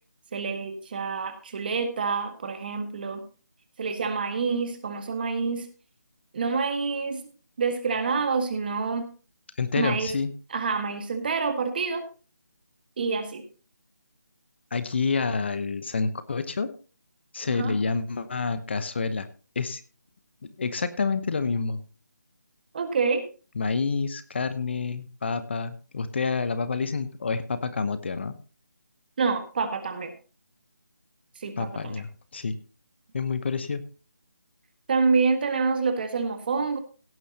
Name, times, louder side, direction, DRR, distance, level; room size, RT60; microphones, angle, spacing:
voice 1, 0.3-3.2 3.8-5.7 6.3-7.2 7.6-9.1 9.8-10.1 10.5-12.0 13.0-13.4 17.5-17.7 22.7-23.2 29.2-30.1 31.4-32.0 34.9-36.8, right 4 dB, 30° right, 8 dB, 1.7 m, -27 dB
voice 2, 9.6-10.3 14.7-16.7 17.3-19.3 19.5-19.8 20.6-21.8 23.6-28.3 31.6-32.6 33.1-33.8, left 4 dB, 40° left, 12 dB, 0.9 m, -28 dB
17.0 x 10.0 x 2.9 m, 0.35 s
figure-of-eight pair, 170°, 10 cm